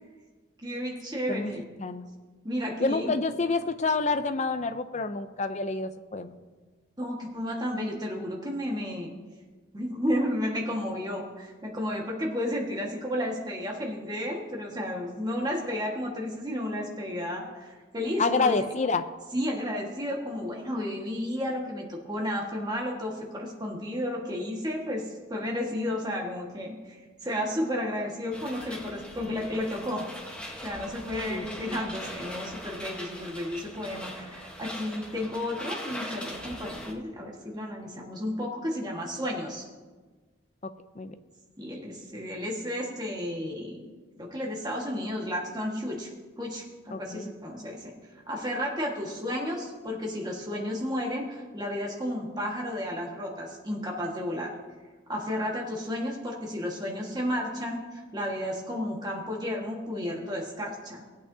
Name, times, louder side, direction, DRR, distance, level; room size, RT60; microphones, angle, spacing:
voice 1, 0.6-1.6 2.4-3.1 7.0-9.1 9.7-18.6 19.3-30.0 30.6-39.7 41.6-43.8 44.2-46.1 46.4-47.9 48.3-54.6 55.1-61.0, left 1 dB, 20° right, -1 dB, 1.5 m, -32 dB
voice 2, 2.8-6.4 18.2-19.1 31.3-31.8 40.6-40.7 41.0-41.1 46.9-47.3, left 3 dB, 35° left, 10 dB, 0.5 m, -28 dB
sound 1, 28.3-36.9, equal, 5° left, 1.1 m, -40 dB
19.0 x 8.5 x 2.7 m, 1.4 s
head